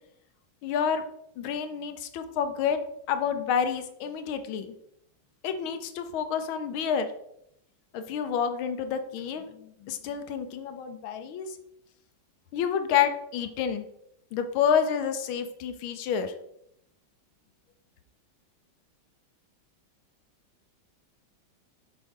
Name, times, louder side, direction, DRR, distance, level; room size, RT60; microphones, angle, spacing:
voice 1, 0.6-1.0 1.4-2.8 3.1-4.7 5.4-7.1 7.9-11.5 12.5-13.9 14.3-16.3, left 7 dB, 85° left, 8 dB, 1.5 m, -29 dB
6.5 x 5.1 x 3.7 m, 0.76 s
omnidirectional pair, 2.2 m